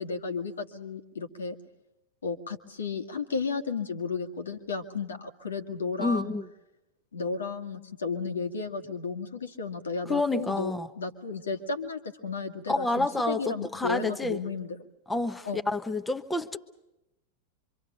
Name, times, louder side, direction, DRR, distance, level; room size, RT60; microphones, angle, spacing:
voice 1, 0.0-1.6 2.2-6.4 7.1-14.8 15.4-15.6, left 4 dB, 70° left, 2.1 m, -33 dB
voice 2, 6.0-6.5 10.1-10.9 12.7-14.4 15.1-16.6, left 2 dB, 10° left, 1.1 m, -29 dB
26.5 x 25.5 x 5.2 m
figure-of-eight pair, 90°, 0 cm